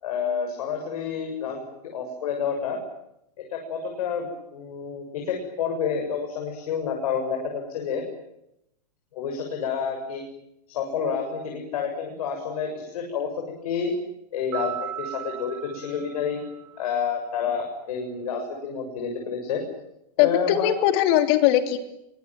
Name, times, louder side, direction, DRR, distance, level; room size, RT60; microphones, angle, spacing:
voice 1, 0.0-2.8 3.5-8.0 9.1-10.2 10.7-13.9 14.3-16.4 16.8-19.6 20.2-20.7, left 6 dB, 60° left, 3 dB, 7.2 m, -29 dB
sound 1, 14.5-17.0, right 11 dB, 50° right, 2.3 m, -37 dB
voice 2, 20.2-21.8, left 12 dB, 35° left, 8 dB, 3.2 m, -20 dB
25.0 x 24.5 x 9.3 m, 0.82 s
supercardioid pair, 170°, 21 cm